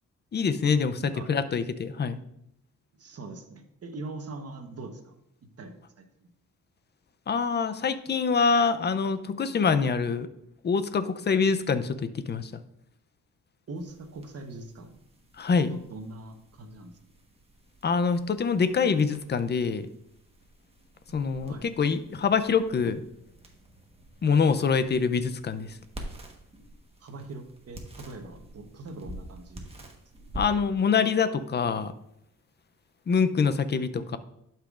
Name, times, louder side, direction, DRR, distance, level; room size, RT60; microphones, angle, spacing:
voice 1, 0.3-1.0 1.3-2.2 7.3-10.3 10.6-12.5 15.4-15.7 17.8-19.8 21.1-23.0 24.2-25.8 30.3-31.9 33.1-34.2, left 5 dB, 35° left, 12 dB, 0.5 m, -25 dB
voice 2, 3.0-5.1 5.6-6.0 13.7-14.9 15.7-17.0 21.4-21.7 27.0-29.7, right 2 dB, 50° right, 5 dB, 1.1 m, -42 dB
sound 1, 13.8-33.4, right 1 dB, 20° right, 1.2 m, -48 dB
11.5 x 5.7 x 2.5 m, 0.78 s
cardioid pair, 100°, 32 cm